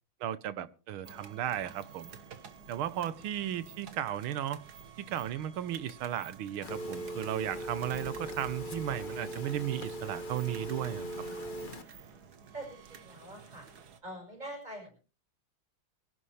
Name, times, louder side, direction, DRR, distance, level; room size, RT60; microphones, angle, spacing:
voice 1, 0.2-2.2 2.7-4.6 5.0-11.1, right 11 dB, 80° right, 1.8 m, -35 dB
sound 1, 1.0-14.0, right 7 dB, 50° right, 1.7 m, -52 dB
Telephone, 6.6-11.8, right 1 dB, 30° left, 1.0 m, -39 dB
voice 2, 12.5-13.7 14.0-15.0, right 1 dB, 20° right, 6.0 m, -45 dB
23.0 x 11.5 x 3.3 m
omnidirectional pair, 2.3 m